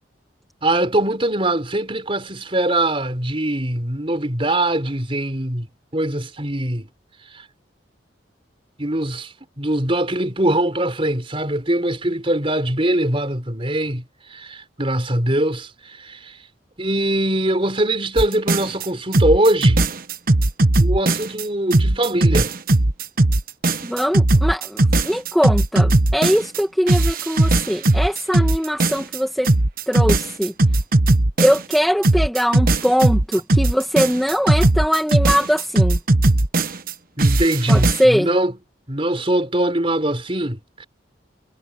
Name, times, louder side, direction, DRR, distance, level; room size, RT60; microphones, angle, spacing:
voice 1, 0.6-5.7 5.9-6.9 7.3-7.4 8.8-14.0 14.3-16.4 16.8-19.8 20.8-22.5 37.2-38.5 38.9-40.9, right 1 dB, 30° right, 4.4 m, -22 dB
sound 1, 18.2-18.9 19.1-21.4 21.7-26.6 26.9-29.2 29.5-31.8 32.0-36.9 37.2-38.0, right 2 dB, 50° right, 1.2 m, -17 dB
voice 2, 23.8-29.5 29.9-30.5 31.4-36.0 37.7-38.3, equal, ahead, 1.9 m, -21 dB
head